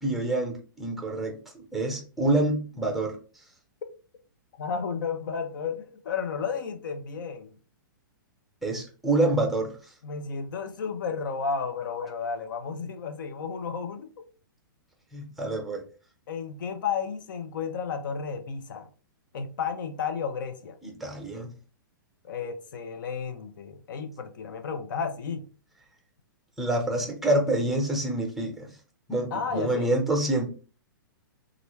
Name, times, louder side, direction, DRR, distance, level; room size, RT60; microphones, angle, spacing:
voice 1, 0.0-3.2 8.6-9.7 15.1-15.8 20.8-21.5 26.6-28.7 29.1-30.5, right 2 dB, ahead, 0.9 m, -27 dB
voice 2, 4.6-7.5 10.0-14.3 16.3-18.9 19.3-20.8 22.2-25.4 29.3-29.9, left 6 dB, 65° left, 0.6 m, -32 dB
3.0 x 2.5 x 3.1 m
hypercardioid pair, 115°, 11 cm